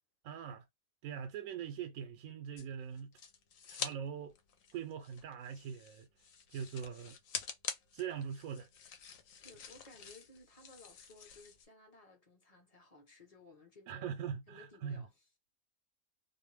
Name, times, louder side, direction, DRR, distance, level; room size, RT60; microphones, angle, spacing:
voice 1, 0.2-0.7 1.0-3.2 3.7-4.3 4.7-6.1 6.5-7.2 7.9-8.7 13.9-15.0, right 8 dB, 85° right, 1.0 m, -42 dB
sound 1, 2.6-4.0 4.3-11.6, left 7 dB, 75° left, 1.0 m, -46 dB
voice 2, 9.4-14.2 14.5-15.3, left 2 dB, 35° left, 0.7 m, -59 dB
2.5 x 2.0 x 3.2 m
omnidirectional pair, 1.4 m